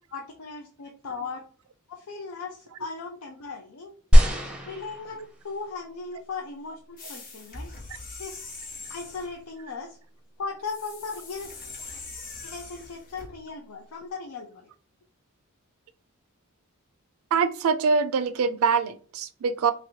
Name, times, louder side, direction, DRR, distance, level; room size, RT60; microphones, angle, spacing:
voice 1, 0.1-1.4 1.9-3.9 4.6-7.7 8.2-8.6 8.9-10.0 10.4-11.5 12.4-14.7, left 4 dB, 90° left, 0.5 m, -37 dB
sound 1, 4.1-5.6 6.4-6.5, equal, 5° right, 0.6 m, -20 dB
sound 2, 7.0-9.4 10.6-13.3, left 3 dB, 45° left, 0.8 m, -42 dB
voice 2, 17.3-19.7, right 5 dB, 90° right, 0.4 m, -24 dB
3.0 x 2.9 x 2.7 m
head